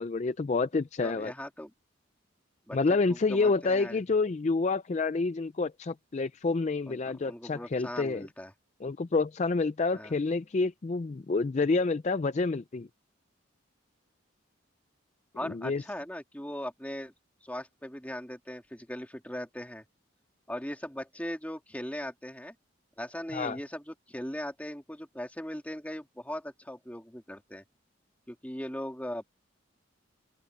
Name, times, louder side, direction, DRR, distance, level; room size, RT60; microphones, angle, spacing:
voice 1, 0.0-1.3 2.7-8.3 8.8-12.9 15.4-15.8 23.3-23.6, left 3 dB, 35° left, 0.4 m, -28 dB
voice 2, 1.0-1.7 2.7-2.8 3.1-4.0 6.9-8.5 9.9-10.1 15.3-17.1 17.4-19.8 20.5-22.5 23.0-27.6 28.3-29.3, left 1 dB, 10° left, 2.7 m, -39 dB
open air
head